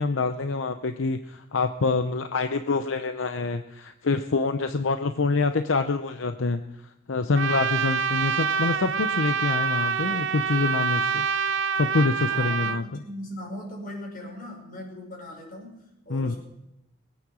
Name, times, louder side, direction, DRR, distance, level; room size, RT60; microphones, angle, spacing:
voice 1, 0.0-6.7 7.1-11.2 11.7-12.9 16.1-16.4, left 3 dB, 75° left, 8 dB, 0.7 m, -26 dB
Trumpet, 7.3-12.8, right 6 dB, 70° right, 0.7 m, -26 dB
voice 2, 12.1-16.4, left 1 dB, 45° left, 0 dB, 5.6 m, -39 dB
22.0 x 9.1 x 6.2 m, 0.89 s
head